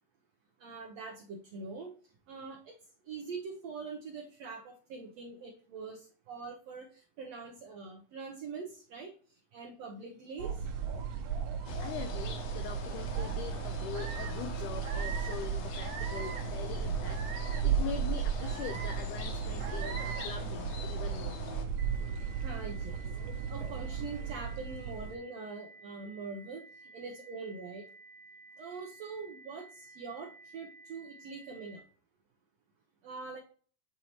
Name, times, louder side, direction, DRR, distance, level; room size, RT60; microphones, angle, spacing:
voice 1, 0.6-2.0 2.3-2.7 3.0-9.1 9.5-10.7 22.3-23.0 23.5-27.9 28.6-31.8 33.0-33.4, right 4 dB, 90° right, 2 dB, 1.4 m, -43 dB
sound 1, 10.4-25.2, right 7 dB, 70° right, 2.2 m, -35 dB
voice 2, 11.5-21.4, left 9 dB, 85° left, 7 dB, 1.8 m, -43 dB
sound 2, 11.7-21.7, left 5 dB, 65° left, 1.7 m, -44 dB
sound 3, 21.8-31.8, right 3 dB, 50° right, 1.3 m, -54 dB
8.6 x 4.1 x 3.0 m, 0.42 s
omnidirectional pair, 4.1 m